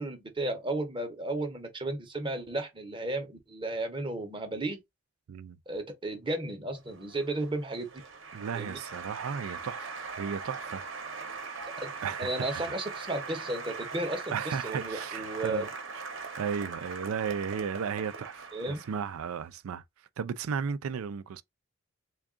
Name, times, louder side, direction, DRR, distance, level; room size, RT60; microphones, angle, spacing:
voice 1, 0.0-4.8 5.7-7.9 8.5-8.8 11.8-11.9 12.2-15.7 18.5-18.8, right 2 dB, 25° right, 0.7 m, -34 dB
Applause, 6.8-19.3, right 4 dB, 60° right, 0.8 m, -41 dB
voice 2, 8.3-10.8 12.0-12.7 14.3-15.7 16.3-19.8 20.2-21.4, right 6 dB, 80° right, 0.4 m, -35 dB
3.5 x 2.3 x 3.6 m
head